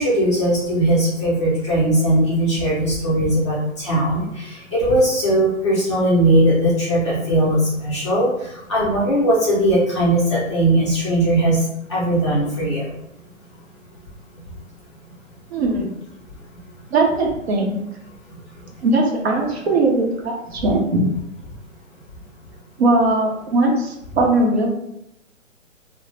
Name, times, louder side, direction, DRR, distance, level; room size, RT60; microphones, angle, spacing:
voice 1, 0.0-8.3 8.7-11.6 11.9-12.8, right 1 dB, 20° left, -7 dB, 0.5 m, -19 dB
voice 2, 15.5-15.9 16.9-17.8 18.8-21.1 22.8-24.7, right 2 dB, 50° right, 0 dB, 0.7 m, -19 dB
2.7 x 2.0 x 3.2 m, 0.83 s
hypercardioid pair, 140°, 40 cm